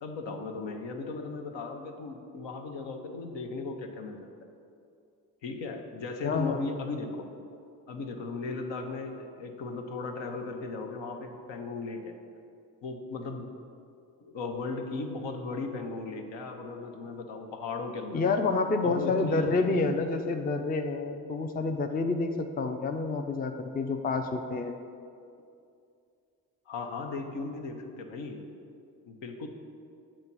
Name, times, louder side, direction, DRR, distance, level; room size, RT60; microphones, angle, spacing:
voice 1, 0.0-4.2 5.4-7.3 7.9-12.1 12.8-13.5 14.2-18.2 18.8-19.7 24.2-24.3 26.7-28.4 29.1-29.5, left 3 dB, 65° left, 4 dB, 0.8 m, -37 dB
voice 2, 6.2-6.6 18.1-24.7, left 3 dB, 20° left, 6 dB, 0.5 m, -28 dB
7.5 x 3.0 x 6.0 m, 2.5 s
hypercardioid pair, 45°, 47 cm